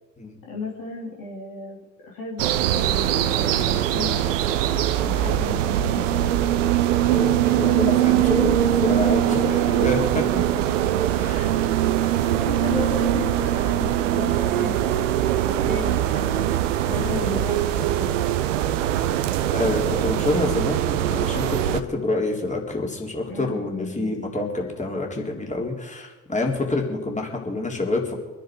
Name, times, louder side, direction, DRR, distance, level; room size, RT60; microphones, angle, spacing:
voice 1, 0.4-4.4 5.0-6.7 7.0-7.3 8.1-8.5 9.1-9.5 11.3-11.5 12.3-16.6 16.9-18.5 23.3-24.2, left 3 dB, 60° left, -3 dB, 3.4 m, -35 dB
sound 1, 2.4-21.8, right 12 dB, 80° right, 0.7 m, -22 dB
voice 2, 7.0-10.6 11.2-11.6 16.9-17.3 19.5-28.1, left 2 dB, 20° left, 0 dB, 3.7 m, -27 dB
25.5 x 10.0 x 4.7 m, 1.3 s
figure-of-eight pair, 40°, 37 cm